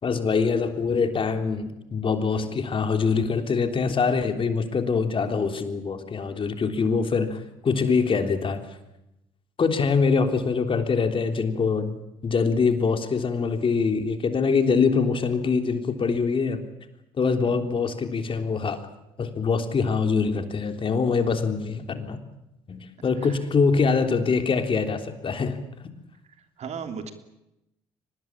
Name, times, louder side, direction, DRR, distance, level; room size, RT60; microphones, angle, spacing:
voice 1, 0.0-8.6 9.6-16.6 17.2-18.8 19.2-22.2 22.7-25.6, left 5 dB, 40° left, 7 dB, 3.4 m, -24 dB
voice 2, 26.6-27.1, right 6 dB, 55° right, 7 dB, 3.2 m, -36 dB
24.5 x 19.5 x 8.7 m, 0.89 s
supercardioid pair, 65°, 13 cm